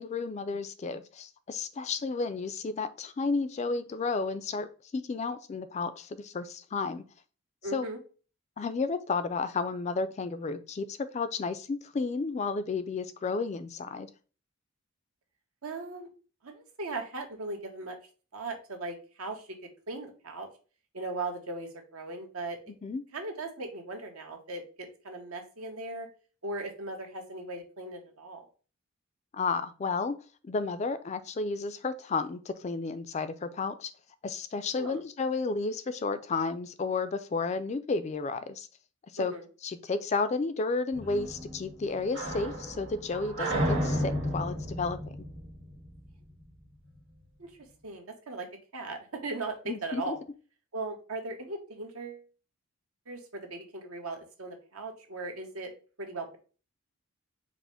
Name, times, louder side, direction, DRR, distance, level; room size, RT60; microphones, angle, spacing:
voice 1, 0.0-4.7 4.9-7.0 7.7-7.9 8.6-14.1 22.8-23.0 29.3-30.1 30.4-33.9 34.2-38.7 39.1-39.3 39.6-45.2 49.7-50.2, left 4 dB, 30° left, 12 dB, 0.3 m, -32 dB
voice 2, 7.6-8.0 15.6-16.1 16.4-18.0 18.3-19.5 19.9-20.5 20.9-22.6 23.1-26.1 26.4-28.5 34.8-35.0 39.2-39.4 47.4-47.5 47.8-48.5 48.7-50.2 50.7-52.2 53.1-55.7 56.0-56.4, right 2 dB, 80° right, 3 dB, 1.0 m, -38 dB
sound 1, 40.9-46.4, equal, 65° right, 1.9 m, -33 dB
4.9 x 2.1 x 4.8 m, 0.36 s
head